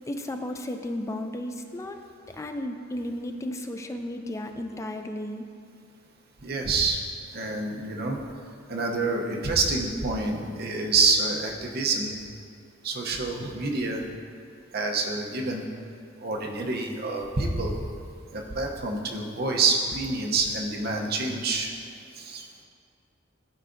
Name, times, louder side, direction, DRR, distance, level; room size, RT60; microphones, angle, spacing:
voice 1, 0.1-2.0 2.3-5.5, left 1 dB, 15° left, 5 dB, 0.4 m, -34 dB
voice 2, 6.4-7.0 7.3-8.2 8.7-12.1 12.8-14.0 14.7-15.6 16.2-17.7 18.3-21.7 22.1-22.5, right 3 dB, 55° right, 1 dB, 0.8 m, -27 dB
13.5 x 4.6 x 2.6 m, 2.3 s
head